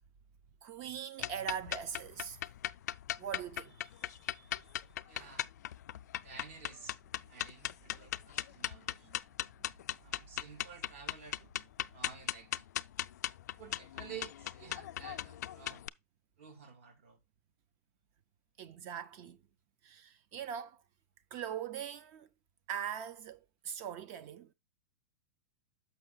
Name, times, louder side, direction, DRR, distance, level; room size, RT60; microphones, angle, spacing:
voice 1, 0.6-2.4 3.2-4.5 5.2-5.4 9.0-9.2 18.6-19.4 19.8-20.8 21.3-22.3 22.7-24.5, right 9 dB, 30° right, 0.6 m, -42 dB
sound 1, 1.2-15.9, left 12 dB, 85° left, 0.4 m, -39 dB
voice 2, 5.1-5.5 6.2-7.0 7.3-9.1 10.0-11.5 11.9-12.7 13.6-15.8 16.4-17.2, right 6 dB, 50° right, 1.7 m, -51 dB
6.6 x 5.7 x 3.8 m
supercardioid pair, 175°, 9 cm